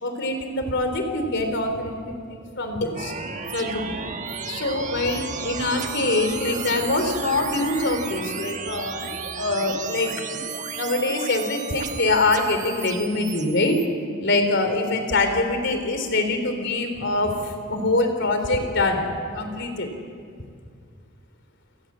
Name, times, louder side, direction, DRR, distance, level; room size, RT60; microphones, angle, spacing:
voice 1, 0.0-3.1 3.5-4.1 4.5-9.0 9.3-10.1 10.7-13.8 14.2-19.0 19.3-19.9, left 2 dB, 60° left, 6 dB, 3.5 m, -24 dB
sound 1, 2.9-13.9, right 6 dB, 40° right, 1.3 m, -34 dB
29.5 x 18.5 x 7.5 m, 2.2 s
head